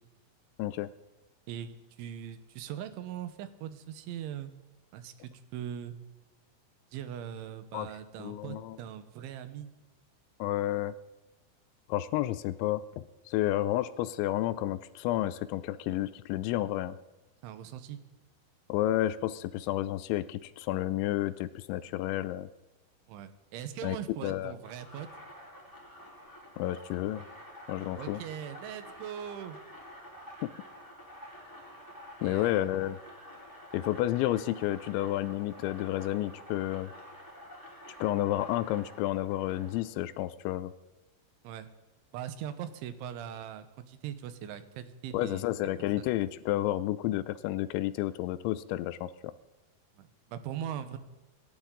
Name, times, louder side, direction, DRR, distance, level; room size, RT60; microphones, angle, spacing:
voice 1, 0.6-0.9 7.7-7.9 8.2-8.8 10.4-10.9 11.9-17.0 18.7-22.5 23.8-24.0 24.2-24.5 26.6-27.2 27.7-28.2 30.4-30.5 32.2-33.0 33.7-36.9 37.9-40.7 45.1-49.1, left 14 dB, 85° left, 15 dB, 2.8 m, -31 dB
voice 2, 1.5-4.5 4.9-6.0 6.9-9.7 17.4-18.0 23.1-25.1 28.0-29.6 32.2-32.7 41.4-41.7 42.1-45.5 46.0-46.1 50.0-51.0, right 10 dB, 85° right, 11 dB, 3.4 m, -41 dB
sound 1, 24.6-39.8, equal, 5° left, 3.4 m, -49 dB
26.0 x 12.0 x 3.8 m, 1.2 s
omnidirectional pair, 5.4 m